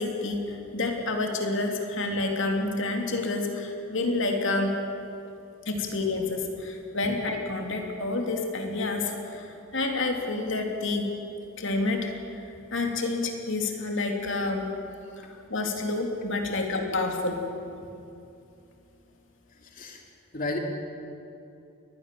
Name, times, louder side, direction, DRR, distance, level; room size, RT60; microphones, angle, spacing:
voice 1, 0.0-4.8 5.7-11.1 11.6-12.4 12.7-14.7 15.2-17.4, left 2 dB, 60° left, 2 dB, 2.9 m, -29 dB
voice 2, 19.5-20.0 20.3-20.6, left 2 dB, 40° left, 1 dB, 3.1 m, -33 dB
22.5 x 19.5 x 7.6 m, 2.7 s
head